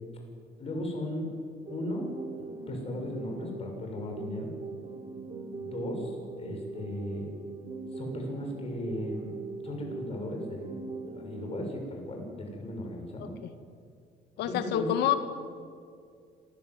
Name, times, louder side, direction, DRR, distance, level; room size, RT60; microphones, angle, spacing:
voice 1, 0.6-1.3 1.7-2.1 2.7-4.5 5.6-7.3 7.9-9.4 9.6-10.7 11.2-13.3 14.4-14.9, left 1 dB, 35° left, 1 dB, 6.7 m, -36 dB
sound 1, 1.7-11.7, right 4 dB, 35° right, 4.1 m, -41 dB
voice 2, 14.4-15.1, left 11 dB, 80° left, 10 dB, 1.9 m, -27 dB
27.0 x 16.0 x 9.6 m, 2.3 s
cardioid pair, 110°, 17 cm